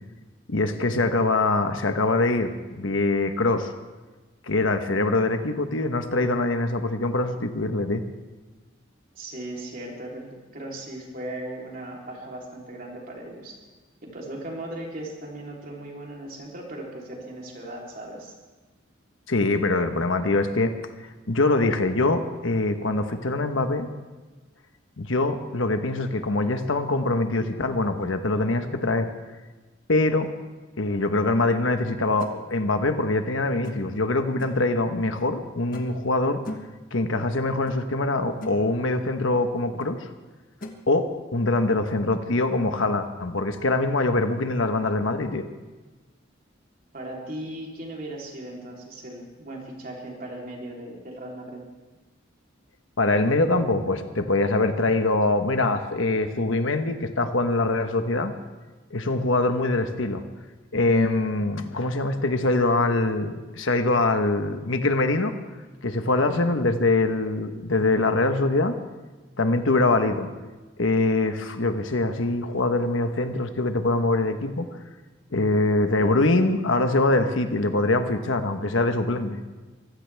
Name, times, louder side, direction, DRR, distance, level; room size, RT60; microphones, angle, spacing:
voice 1, 0.5-3.7 4.5-8.1 19.3-20.7 21.3-23.9 25.0-29.1 29.9-30.3 30.8-36.4 36.9-40.1 40.9-45.5 53.0-58.3 58.9-60.2 60.7-65.3 65.8-68.8 69.4-70.3 70.8-74.7 75.3-79.4, left 2 dB, 80° left, 7 dB, 1.2 m, -23 dB
voice 2, 9.1-13.6 14.0-18.3 46.9-51.6, right 1 dB, 45° right, -2 dB, 3.5 m, -37 dB
sound 1, 32.2-32.4 33.6-34.0 34.4-34.7 35.7-36.1 36.4-36.8 37.7-37.8 38.2-38.6 39.8-39.9 40.6-40.8, left 1 dB, 45° left, 1.4 m, -38 dB
24.0 x 15.5 x 3.5 m, 1.2 s
head